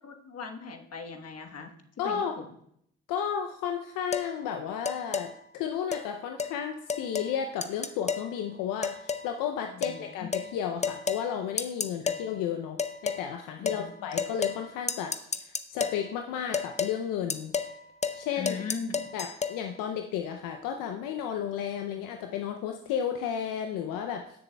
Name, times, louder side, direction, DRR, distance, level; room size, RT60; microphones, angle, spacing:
voice 1, 0.0-1.7 2.0-2.5 9.7-10.4 12.0-12.2 13.6-14.2 18.4-19.1, left 5 dB, 50° left, 4 dB, 1.2 m, -40 dB
voice 2, 2.0-2.4 3.1-12.8 13.0-17.5 18.1-18.5 19.1-24.4, left 8 dB, 80° left, 5 dB, 0.6 m, -33 dB
sound 1, 4.1-4.3 4.9-5.3 5.9-6.1 6.4-6.5 6.9-7.3 7.6-8.3 8.8-9.3 9.8-10.0 10.3-10.5 10.8-11.2 11.6-12.2 12.8-13.2 13.7-13.8 14.2-14.6 14.9-16.0 16.5-17.0 17.3-17.7 18.0-18.2 18.5-19.6, left 5 dB, 20° left, 0.7 m, -31 dB
15.5 x 6.8 x 2.2 m, 0.71 s
hypercardioid pair, 45°, 32 cm